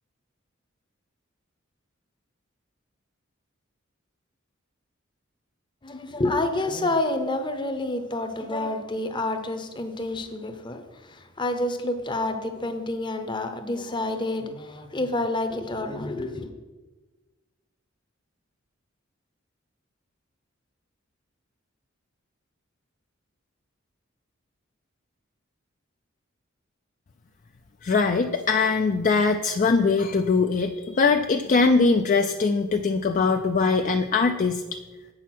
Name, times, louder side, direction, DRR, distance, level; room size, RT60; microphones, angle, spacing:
voice 1, 5.8-16.5, left 2 dB, 25° left, 0.7 m, -28 dB
voice 2, 27.8-34.6, left 4 dB, 40° left, 0.3 m, -22 dB
8.2 x 6.3 x 5.9 m
head